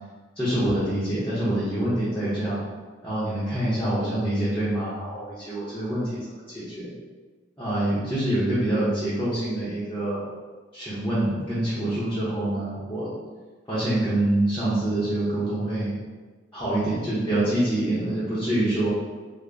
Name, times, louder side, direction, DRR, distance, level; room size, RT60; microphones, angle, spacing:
voice 1, 0.4-2.6 3.0-6.1 6.5-6.9 7.6-10.3 10.7-13.1 13.7-15.9 16.5-18.9, right 1 dB, 10° left, -11 dB, 0.7 m, -26 dB
3.8 x 2.1 x 3.3 m, 1.4 s
head